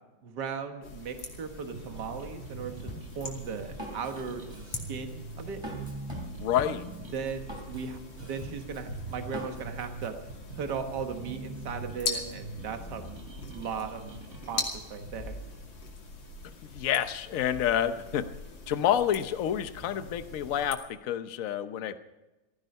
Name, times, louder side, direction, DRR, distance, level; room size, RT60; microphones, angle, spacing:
voice 1, 0.2-5.6 7.1-10.2 10.5-13.1 13.5-14.1 14.5-14.6 14.9-15.4, right 6 dB, 65° right, 6 dB, 2.0 m, -37 dB
sound 1, 0.8-20.7, left 3 dB, 90° left, 3.3 m, -42 dB
sound 2, 1.7-14.7, right 3 dB, 40° right, 1.9 m, -44 dB
Drum kit, 2.9-10.1, right 1 dB, 15° right, 3.4 m, -43 dB
voice 2, 6.4-6.8 16.6-18.3 18.7-22.0, left 10 dB, 55° left, 11 dB, 1.1 m, -28 dB
15.5 x 15.5 x 5.4 m, 1.1 s
omnidirectional pair, 2.0 m